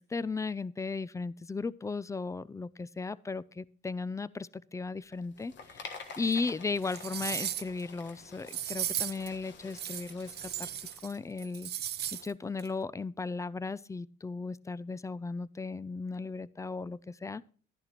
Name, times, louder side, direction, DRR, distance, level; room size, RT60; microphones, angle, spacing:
voice 1, 0.0-10.7 11.0-11.7 12.2-17.4, left 4 dB, 15° left, 18 dB, 0.3 m, -36 dB
sound 1, 5.1-12.2, left 5 dB, 65° left, 1.4 m, -50 dB
sound 2, 6.3-6.4 6.8-7.8 8.5-9.3 9.7-11.1 11.4-12.3 12.6-12.7, right 11 dB, 55° right, 0.5 m, -36 dB
12.0 x 10.5 x 2.9 m, 0.42 s
cardioid pair, 90°, 20 cm